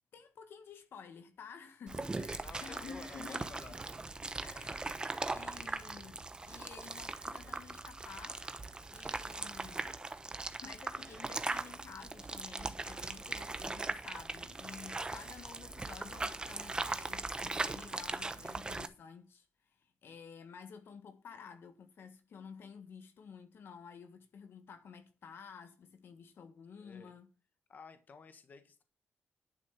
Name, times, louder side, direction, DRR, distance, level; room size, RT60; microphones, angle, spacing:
voice 1, 0.1-3.8 4.4-8.4 8.9-10.0 10.6-27.3, left 6 dB, 70° left, 1.6 m, -52 dB
sound 1, 1.9-18.9, right 3 dB, 20° right, 0.9 m, -40 dB
voice 2, 2.3-3.7 4.6-5.1 26.8-27.1 27.7-28.8, left 5 dB, 45° left, 1.5 m, -53 dB
11.0 x 6.2 x 5.8 m
wide cardioid pair, 120°, 4 cm